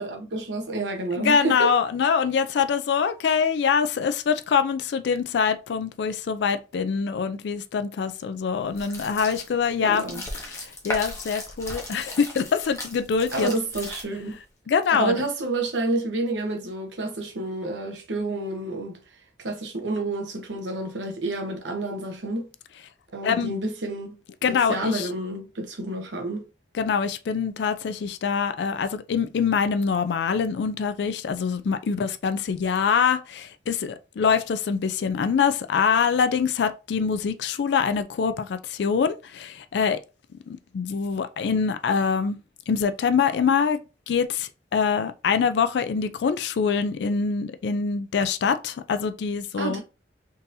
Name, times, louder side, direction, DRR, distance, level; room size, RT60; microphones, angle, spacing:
voice 1, 0.0-1.7 9.8-10.2 13.3-14.4 14.9-19.0 19.4-22.5 23.1-24.2 24.5-26.4 49.5-49.8, right 2 dB, 85° right, 0.9 m, -29 dB
voice 2, 1.1-10.0 10.5-13.5 14.7-15.2 23.2-23.6 24.4-25.1 26.7-40.0 40.5-42.4 42.7-43.8 44.1-49.8, left 6 dB, 70° left, 0.3 m, -24 dB
sound 1, 8.7-14.4, left 1 dB, 15° left, 0.7 m, -36 dB
3.7 x 2.7 x 2.6 m
head